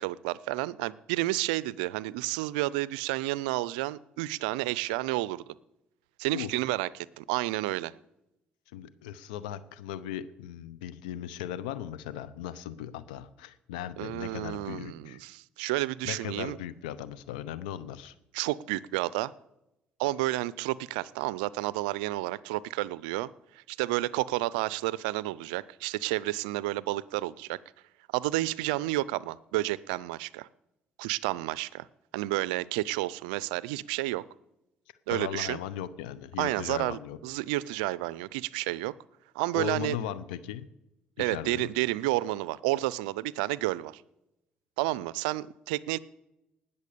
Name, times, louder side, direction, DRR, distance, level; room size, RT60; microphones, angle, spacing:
voice 1, 0.0-5.4 6.2-7.9 14.0-16.6 18.3-19.3 20.0-23.3 23.5-27.6 28.1-30.5 31.0-31.9 32.1-34.2 35.1-35.6 36.4-38.9 39.3-40.0 41.2-44.0 44.8-46.0, right 18 dB, 85° right, 20 dB, 0.4 m, -31 dB
voice 2, 8.7-15.2 16.0-18.1 35.1-37.2 39.5-40.7 41.2-41.7, left 10 dB, 85° left, 15 dB, 0.7 m, -37 dB
19.0 x 6.9 x 6.8 m, 0.88 s
hypercardioid pair, 55°, 4 cm